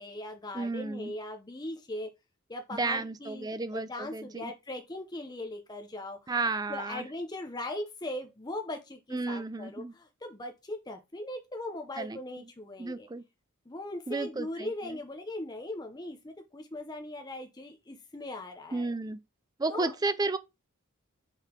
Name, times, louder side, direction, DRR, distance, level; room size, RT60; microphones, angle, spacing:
voice 1, 0.0-2.1 2.5-6.3 6.7-13.1 13.7-18.9 19.7-19.9, left 1 dB, 20° left, 0.7 m, -39 dB
voice 2, 0.5-1.1 2.7-4.5 6.3-7.0 9.1-9.9 12.0-12.2 12.8-13.2 14.1-15.0 18.7-19.2 19.6-20.4, right 3 dB, 15° right, 0.4 m, -32 dB
5.7 x 3.8 x 4.4 m
head